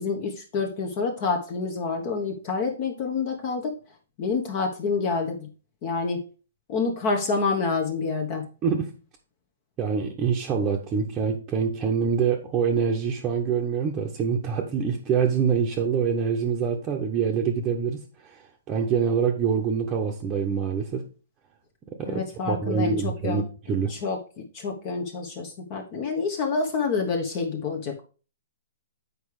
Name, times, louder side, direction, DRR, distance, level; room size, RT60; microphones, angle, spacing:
voice 1, 0.0-3.7 4.2-5.5 5.8-6.2 6.7-8.5 22.1-23.4 23.9-24.2 24.5-28.0, left 4 dB, 35° left, 3 dB, 1.2 m, -27 dB
voice 2, 9.8-18.4 18.7-21.0 22.0-23.9, right 6 dB, 20° right, 0 dB, 0.9 m, -25 dB
7.8 x 4.8 x 4.8 m, 0.36 s
hypercardioid pair, 155°, 0 cm